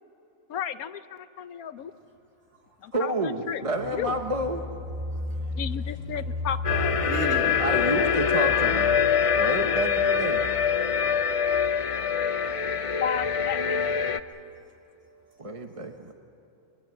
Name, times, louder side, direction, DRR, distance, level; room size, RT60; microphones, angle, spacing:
voice 1, 0.5-1.9 2.8-3.6 4.0-4.1 5.6-6.9 13.0-13.9, left 9 dB, 80° left, 12 dB, 1.2 m, -33 dB
voice 2, 2.9-4.6 7.6-9.1 9.3-10.4 15.4-16.1, right 1 dB, 25° right, 4 dB, 1.1 m, -29 dB
voice 3, 5.0-7.6, equal, 50° right, 0 dB, 3.4 m, -31 dB
sound 1, 6.6-14.2, left 7 dB, 50° left, 0.4 m, -24 dB
23.0 x 22.0 x 7.7 m, 3.0 s
omnidirectional pair, 1.5 m